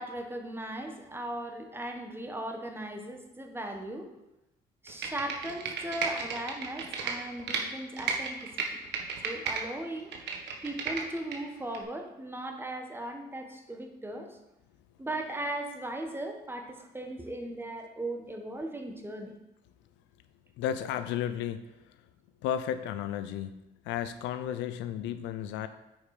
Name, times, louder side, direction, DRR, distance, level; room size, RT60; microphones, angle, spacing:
voice 1, 0.0-4.1 4.8-8.8 9.2-10.1 10.6-14.4 15.0-19.3, right 1 dB, 10° right, 4 dB, 1.4 m, -38 dB
Computer keyboard, 4.9-7.6 8.0-9.6 10.0-11.4 11.7-11.8, right 6 dB, 70° right, 1.4 m, -33 dB
voice 2, 20.6-22.0 22.4-25.7, left 10 dB, 80° left, 11 dB, 0.5 m, -33 dB
8.5 x 5.2 x 5.0 m, 0.95 s
supercardioid pair, 80°, 19 cm